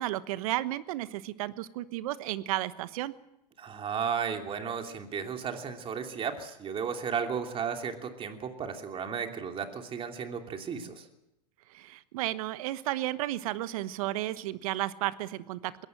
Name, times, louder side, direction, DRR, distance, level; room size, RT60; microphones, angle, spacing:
voice 1, 0.0-3.1 11.7-15.7, right 15 dB, 60° right, 15 dB, 1.1 m, -33 dB
voice 2, 3.6-11.0, right 7 dB, 25° right, 5 dB, 2.9 m, -34 dB
21.5 x 18.0 x 7.7 m, 0.88 s
hypercardioid pair, 105°, 21 cm